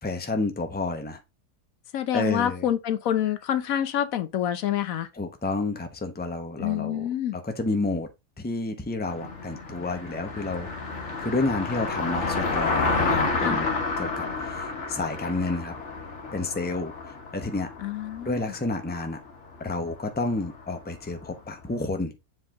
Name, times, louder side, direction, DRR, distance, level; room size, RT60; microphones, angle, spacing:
voice 1, 0.0-1.2 2.1-2.7 5.1-8.1 8.4-10.7 11.2-13.7 14.0-15.7 16.3-17.7 18.2-19.2 19.6-22.2, left 2 dB, 10° left, 0.8 m, -30 dB
voice 2, 1.9-5.1 6.6-7.4 13.4-13.6 17.8-18.4, left 10 dB, 75° left, 1.1 m, -27 dB
Car passing by, 9.1-21.4, left 3 dB, 55° left, 1.7 m, -30 dB
7.3 x 3.8 x 3.7 m
omnidirectional pair, 1.5 m